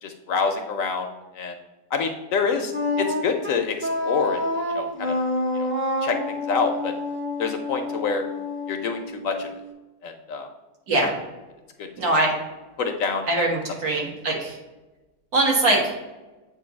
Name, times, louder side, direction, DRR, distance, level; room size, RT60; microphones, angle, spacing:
voice 1, 0.0-1.1 1.3-1.5 1.9-2.7 3.0-4.4 4.7-5.2 5.5-5.7 6.0-6.2 6.5-6.9 7.4-8.2 8.7-9.5 10.0-10.5 12.0-12.1 12.8-13.3, left 5 dB, 65° left, 5 dB, 0.9 m, -26 dB
Wind instrument woodwind instrument, 2.7-9.6, left 2 dB, 15° right, 0.5 m, -28 dB
voice 2, 12.0-12.3 13.3-14.6 15.3-15.8, right 2 dB, 70° right, -1 dB, 1.9 m, -22 dB
7.7 x 2.6 x 5.1 m, 1.1 s
omnidirectional pair, 1.7 m